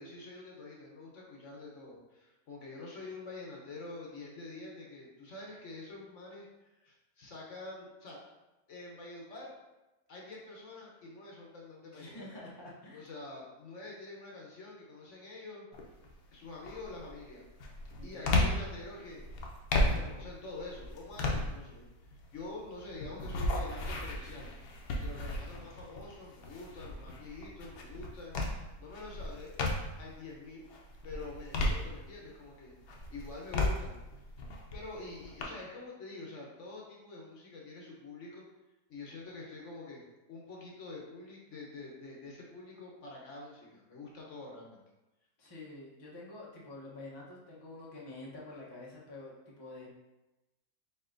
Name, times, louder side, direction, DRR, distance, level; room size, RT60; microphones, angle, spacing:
voice 1, 0.0-6.5 6.8-8.2 8.7-9.5 10.1-12.3 12.9-15.7 16.3-17.4 18.0-19.2 19.9-29.5 30.0-30.7 31.0-34.0 34.7-38.4 38.9-40.0 40.3-44.8, left 2 dB, 55° left, -2 dB, 1.1 m, -46 dB
voice 2, 11.9-13.1 18.0-18.4 45.4-49.9, left 2 dB, 25° left, -5 dB, 0.5 m, -48 dB
sound 1, 15.7-16.1 16.6-30.1 30.6-32.4 32.8-35.4, left 2 dB, 85° left, 1.3 m, -35 dB
4.5 x 4.2 x 2.5 m, 1.0 s
omnidirectional pair, 1.7 m